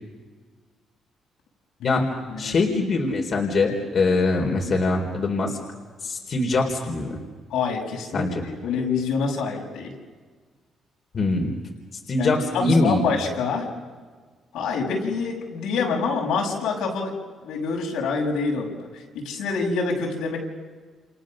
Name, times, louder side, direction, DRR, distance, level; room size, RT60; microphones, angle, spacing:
voice 1, 1.8-2.6 7.5-9.9 12.2-13.7 14.5-17.1 17.4-18.7 19.1-20.4, left 4 dB, 85° left, 0 dB, 6.4 m, -26 dB
voice 2, 2.4-5.6 6.0-7.2 8.1-8.4 11.1-11.5 12.1-13.0, left 3 dB, 50° left, 2 dB, 4.0 m, -23 dB
29.5 x 28.0 x 6.5 m, 1.5 s
cardioid pair, 90°, 0 cm